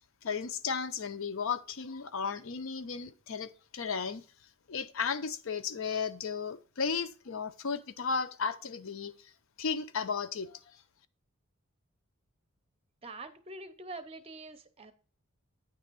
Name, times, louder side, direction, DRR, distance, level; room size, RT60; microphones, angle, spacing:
voice 1, 0.2-4.2 4.7-9.3 9.6-10.8, left 5 dB, 65° left, 0.5 m, -34 dB
voice 2, 13.0-14.9, right 2 dB, 25° right, 0.6 m, -45 dB
9.2 x 3.4 x 6.6 m
head